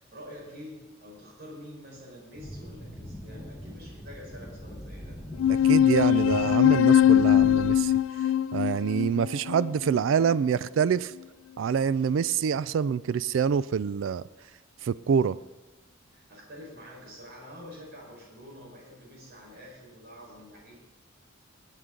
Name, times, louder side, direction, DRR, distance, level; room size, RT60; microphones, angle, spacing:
voice 1, 0.0-5.2 16.1-20.8, equal, 50° right, -2 dB, 4.6 m, -47 dB
sound 1, 2.3-7.8, equal, 10° left, 1.3 m, -41 dB
sound 2, 5.4-10.3, left 10 dB, 80° left, 0.3 m, -22 dB
voice 2, 5.6-7.9 8.5-11.1 11.6-14.2 14.8-15.4, right 7 dB, 70° right, 17 dB, 0.3 m, -26 dB
19.5 x 9.1 x 3.8 m, 1.1 s
head